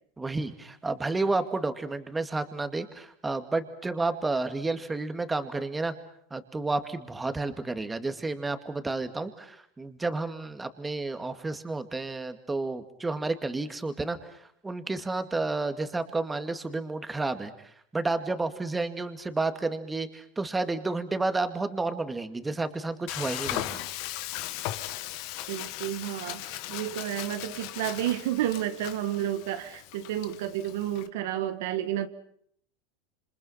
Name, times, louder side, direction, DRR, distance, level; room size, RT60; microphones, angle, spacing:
voice 1, 0.2-5.9 6.3-17.5 17.9-23.8, right 3 dB, 10° right, 9 dB, 2.2 m, -31 dB
Frying (food), 23.1-31.1, left 15 dB, 60° left, 1.8 m, -37 dB
voice 2, 25.5-32.1, right 12 dB, 75° right, 10 dB, 1.7 m, -31 dB
28.0 x 26.0 x 5.8 m, 0.68 s
supercardioid pair, 120°, 0 cm